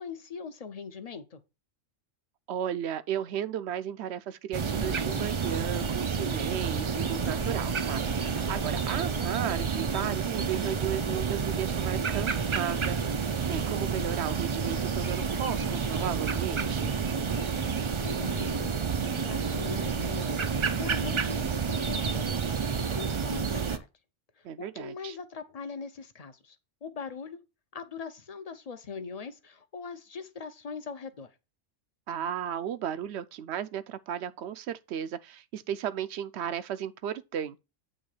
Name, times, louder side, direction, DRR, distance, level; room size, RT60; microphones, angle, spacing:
voice 1, 0.0-1.4 17.6-18.7 19.1-20.5 20.7-22.2 22.9-23.9 24.6-26.6 26.8-27.4 27.7-31.3, left 5 dB, 40° left, 0.6 m, -41 dB
voice 2, 2.5-16.9 24.4-25.2 32.1-37.6, right 9 dB, 65° right, 0.8 m, -35 dB
sound 1, 4.5-23.8, right 6 dB, 50° right, 0.3 m, -29 dB
8.7 x 3.1 x 6.5 m
omnidirectional pair, 1.3 m